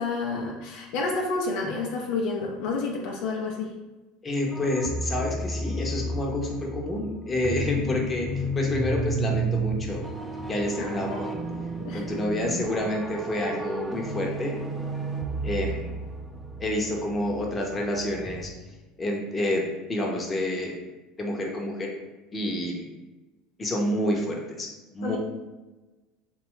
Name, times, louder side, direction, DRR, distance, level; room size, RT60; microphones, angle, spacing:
voice 1, 0.0-3.7 10.8-11.2 11.8-12.1 25.0-25.2, left 3 dB, 70° left, -1 dB, 0.5 m, -30 dB
voice 2, 4.2-10.0 10.5-11.4 11.9-14.6 15.4-16.0 16.6-18.5 19.0-20.7 21.2-21.9 22.3-22.9 23.6-25.2, left 1 dB, 25° left, 0 dB, 0.7 m, -29 dB
sound 1, 4.5-18.5, right 1 dB, 10° right, 0.3 m, -32 dB
2.7 x 2.2 x 3.0 m, 1.1 s
hypercardioid pair, 85°, 0 cm